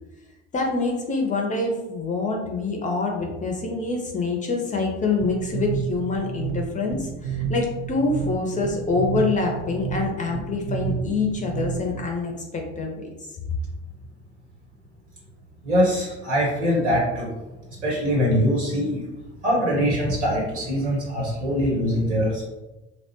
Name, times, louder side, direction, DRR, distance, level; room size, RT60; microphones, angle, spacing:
voice 1, 0.5-12.9, left 3 dB, 20° left, 1 dB, 0.4 m, -26 dB
sound 1, 5.2-12.1, right 7 dB, 55° right, 0.6 m, -31 dB
voice 2, 15.6-17.3 17.8-19.0 19.4-22.4, equal, 80° right, -4 dB, 1.1 m, -22 dB
2.8 x 2.0 x 2.9 m, 1.1 s
figure-of-eight pair, 60°, 36 cm